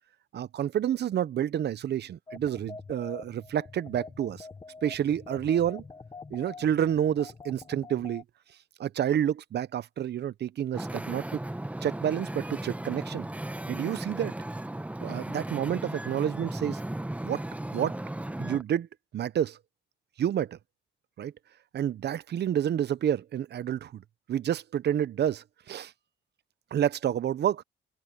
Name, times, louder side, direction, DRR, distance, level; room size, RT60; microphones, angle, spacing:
voice 1, 0.3-4.5 4.8-5.8 6.3-8.2 8.8-11.4 11.8-13.2 13.7-14.3 15.0-16.8 17.2-17.4 17.7-18.0 18.4-18.9 19.1-19.6 20.2-20.6 21.2-21.3 21.7-24.0 24.3-25.9 26.7-27.6, right 10 dB, 55° right, 0.8 m, -29 dB
sound 1, 2.3-8.2, left 4 dB, 20° left, 0.9 m, -45 dB
Wind / Ocean, 10.7-18.6, right 1 dB, 5° right, 1.0 m, -36 dB
open air
cardioid pair, 90°, 20 cm